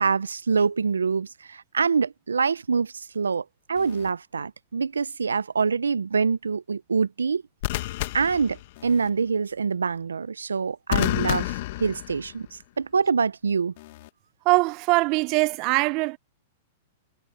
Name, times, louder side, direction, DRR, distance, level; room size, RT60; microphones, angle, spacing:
voice 1, 0.0-7.4 8.1-13.7, right 5 dB, 85° right, 0.8 m, -25 dB
sound 1, 3.8-4.1 7.6-9.1 10.9-12.6 13.8-14.1, left 18 dB, 55° left, 1.6 m, -30 dB
voice 2, 14.4-16.2, right 26 dB, 45° right, 0.8 m, -22 dB
hypercardioid pair, 105°, 0 cm